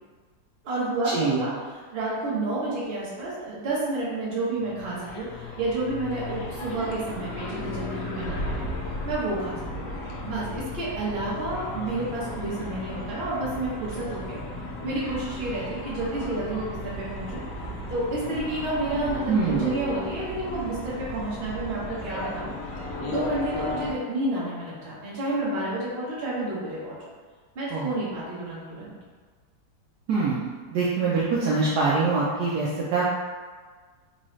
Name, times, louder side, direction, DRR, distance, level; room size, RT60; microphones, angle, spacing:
voice 1, 0.6-8.7 9.0-9.9 10.2-14.4 14.8-17.4 17.9-22.5 23.1-26.9 27.5-28.9, right 2 dB, 40° right, -8 dB, 1.1 m, -30 dB
sound 1, 4.6-23.9, left 1 dB, 75° left, 1.2 m, -35 dB
voice 2, 19.3-19.7 27.7-27.9 30.1-33.1, right 4 dB, 70° right, -6 dB, 1.1 m, -24 dB
4.1 x 2.3 x 3.0 m, 1.5 s
omnidirectional pair, 2.0 m